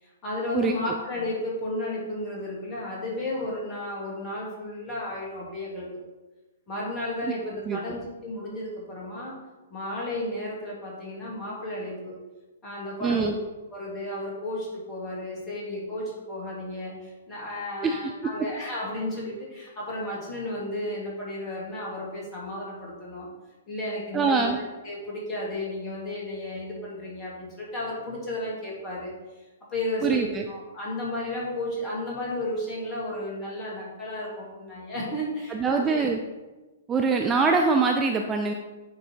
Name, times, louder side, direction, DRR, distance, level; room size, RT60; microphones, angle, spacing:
voice 1, 0.0-5.9 6.7-9.4 9.7-12.2 12.6-13.4 13.7-23.3 23.7-24.5 24.8-36.1, left 1 dB, 20° left, -4 dB, 2.6 m, -33 dB
voice 2, 13.0-13.4 17.8-18.0 24.1-24.6 30.0-30.5 35.5-36.2 36.9-38.5, right 4 dB, 15° right, 3 dB, 0.5 m, -23 dB
8.8 x 4.0 x 4.6 m, 1.2 s
figure-of-eight pair, 115°, 0 cm